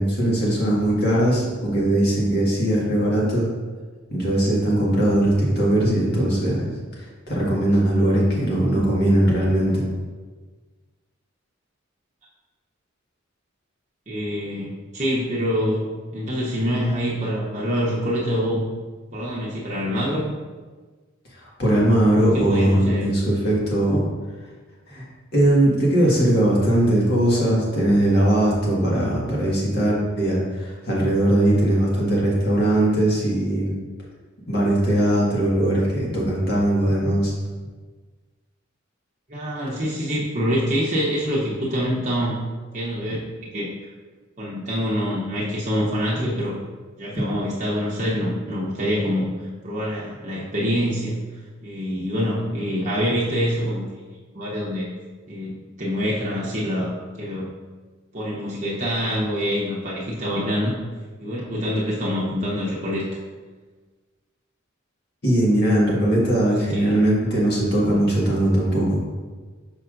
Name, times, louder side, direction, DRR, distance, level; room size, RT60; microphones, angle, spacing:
voice 1, 0.0-3.5 4.1-6.7 7.3-9.8 21.4-24.0 24.9-25.0 25.3-33.7 34.5-37.3 47.2-47.3 65.2-69.0, right 1 dB, 55° left, -5 dB, 1.7 m, -20 dB
voice 2, 14.1-15.9 16.1-18.7 19.1-20.3 22.3-23.1 39.3-42.3 42.7-43.2 43.5-43.6 44.4-46.6 47.0-49.3 49.6-51.2 51.6-54.0 54.3-54.9 55.3-57.5 58.1-60.8 61.2-63.0 66.7-67.0, equal, 35° right, -6 dB, 0.9 m, -25 dB
6.6 x 5.6 x 2.5 m, 1.4 s
head